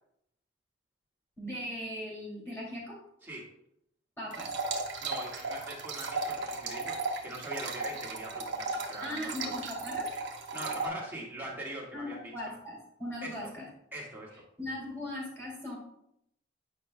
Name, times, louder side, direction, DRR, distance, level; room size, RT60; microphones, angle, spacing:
voice 1, 1.4-3.0 4.2-4.5 9.0-10.1 10.5-10.6 11.9-13.7 14.6-15.8, left 1 dB, 15° left, -5 dB, 2.6 m, -39 dB
sound 1, 4.3-10.9, right 3 dB, 85° right, 0.9 m, -36 dB
voice 2, 5.0-9.7 10.5-12.5 13.2-13.3 13.9-14.4, right 1 dB, 10° right, -5 dB, 1.6 m, -42 dB
8.7 x 5.3 x 2.2 m, 0.76 s
head